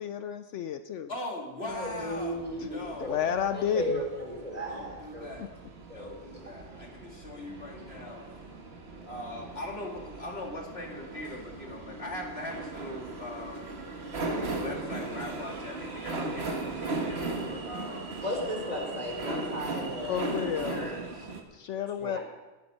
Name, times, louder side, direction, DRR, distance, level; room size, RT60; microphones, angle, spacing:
voice 1, 0.0-1.1 2.6-2.7 3.0-4.0 5.4-5.5 20.1-20.9 21.5-22.2, left 9 dB, 70° left, 9 dB, 0.9 m, -31 dB
voice 2, 1.1-3.2 4.7-5.5 5.9-8.3 9.0-13.8 14.6-19.0 20.3-21.3, left 1 dB, 55° left, 0 dB, 2.3 m, -41 dB
voice 3, 1.6-3.2 3.5-5.3 5.9-6.4 18.2-20.4 20.7-21.3 22.0-22.2, equal, 30° right, -1 dB, 3.2 m, -35 dB
sound 1, 1.7-21.4, right 3 dB, 55° right, 1.6 m, -38 dB
18.5 x 8.0 x 5.5 m, 1.1 s
omnidirectional pair, 1.3 m